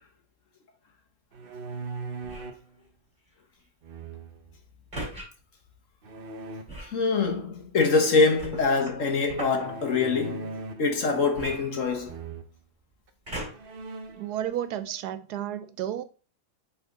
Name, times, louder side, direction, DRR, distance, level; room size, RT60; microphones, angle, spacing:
sound 1, 1.3-2.7 3.8-4.5 6.0-6.6 9.6-10.9 11.3-11.8 12.1-12.5 13.1-13.2 13.5-14.3, right 3 dB, 50° right, 0.7 m, -39 dB
sound 2, 2.2-2.6 4.9-5.3 6.7-7.0 8.4-9.7 11.3-12.3 13.2-13.8 14.5-14.6, right 1 dB, 25° right, 3.0 m, -38 dB
voice 1, 6.9-12.1, left 4 dB, 50° left, 1.5 m, -24 dB
voice 2, 14.1-16.0, right 11 dB, 75° right, 1.1 m, -32 dB
8.2 x 4.1 x 3.9 m
omnidirectional pair, 1.8 m